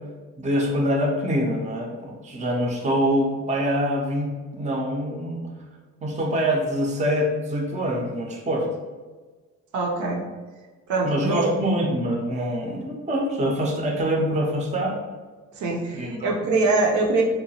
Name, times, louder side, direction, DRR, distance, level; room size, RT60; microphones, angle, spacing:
voice 1, 0.4-5.5 6.0-8.7 11.0-15.0 15.9-16.1, equal, 25° right, -1 dB, 0.5 m, -25 dB
voice 2, 9.7-10.2 10.9-11.5 15.5-17.2, right 3 dB, 70° right, -1 dB, 0.6 m, -23 dB
2.8 x 2.1 x 2.7 m, 1.3 s
cardioid pair, 90°, 30 cm